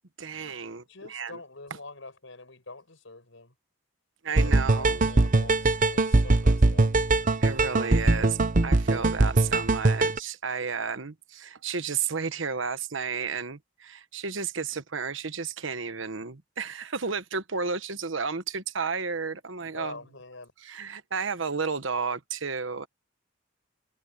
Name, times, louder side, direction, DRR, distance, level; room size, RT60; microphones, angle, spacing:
voice 1, 0.2-1.4 4.2-5.1 7.4-8.4 8.6-20.0 20.6-22.9, right 5 dB, 75° right, 1.2 m, -32 dB
voice 2, 0.9-3.5 4.3-6.9 19.7-20.5, left 3 dB, 80° left, 5.6 m, -45 dB
sound 1, 4.4-10.2, right 2 dB, 45° right, 0.8 m, -22 dB
head